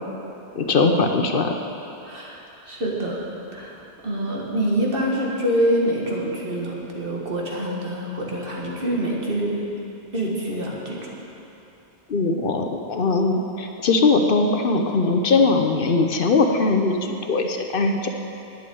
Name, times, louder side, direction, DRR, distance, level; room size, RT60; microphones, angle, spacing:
voice 1, 0.6-1.5 12.1-18.1, left 3 dB, 60° left, 4 dB, 0.9 m, -20 dB
voice 2, 2.0-3.3 3.5-9.6 10.1-11.1, right 1 dB, 60° right, -3 dB, 2.0 m, -26 dB
9.3 x 8.5 x 8.6 m, 2.9 s
omnidirectional pair, 1.1 m